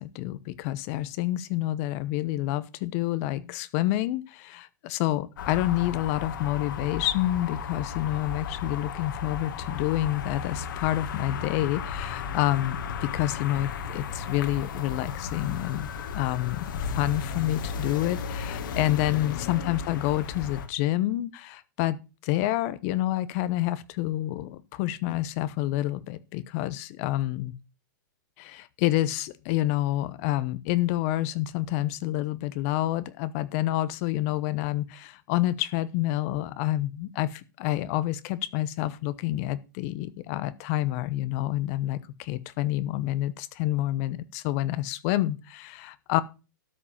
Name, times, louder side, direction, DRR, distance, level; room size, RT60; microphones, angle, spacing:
voice 1, 0.0-15.9 16.1-27.5 28.4-46.2, left 15 dB, 45° left, 0.9 m, -28 dB
sound 1, 5.4-20.7, left 6 dB, 70° left, 2.1 m, -34 dB
13.0 x 5.3 x 7.2 m
hypercardioid pair, 140°, 11 cm